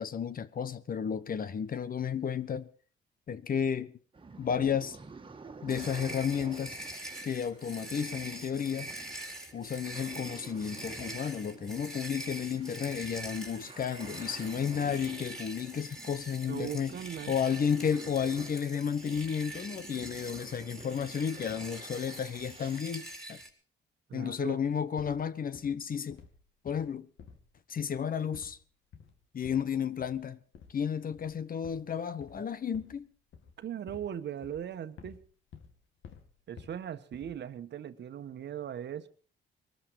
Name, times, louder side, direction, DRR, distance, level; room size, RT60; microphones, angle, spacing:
voice 1, 0.0-2.7 3.3-3.9 4.4-5.0 5.6-6.8 7.2-8.9 9.5-17.0 17.3-23.4 24.1-26.2 26.6-27.1 27.7-28.6 29.3-30.4 30.7-33.1, left 7 dB, 45° left, 1.1 m, -32 dB
sound 1, 4.1-22.8, right 4 dB, 25° right, 1.8 m, -51 dB
sound 2, 5.7-23.5, right 1 dB, 5° left, 3.9 m, -44 dB
voice 2, 16.5-17.3 24.1-24.6 33.6-35.2 36.5-39.1, right 9 dB, 60° right, 1.3 m, -39 dB
sound 3, 25.0-25.3 25.5-25.8 26.1-26.4 26.7-27.5 27.8-28.1 28.3-28.6 28.9-29.2 29.4-29.7 30.0-30.3 30.5-30.8 31.1-31.4 31.6-33.1 33.3-34.2 34.4-35.2 35.5-35.8 36.0-36.8 37.1-37.5, left 6 dB, 75° left, 2.4 m, -52 dB
21.5 x 14.0 x 4.8 m
cardioid pair, 90°, 20 cm